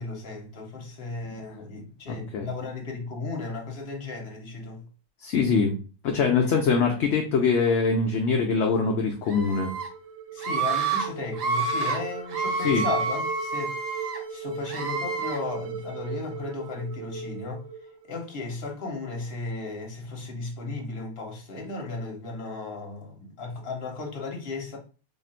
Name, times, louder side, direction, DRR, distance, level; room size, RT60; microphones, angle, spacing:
voice 1, 0.0-4.8 10.3-17.6 18.1-24.8, left 3 dB, 50° left, 1.1 m, -35 dB
voice 2, 2.1-2.5 5.2-5.8 6.0-9.7 12.6-12.9, left 5 dB, 65° left, 0.8 m, -23 dB
sound 1, 9.2-18.4, right 6 dB, 60° right, 0.8 m, -38 dB
Screaming, 9.3-9.9 10.4-11.1 11.3-12.0 12.3-14.2 14.7-15.4, right 4 dB, 80° right, 1.3 m, -28 dB
2.8 x 2.5 x 4.3 m
omnidirectional pair, 1.3 m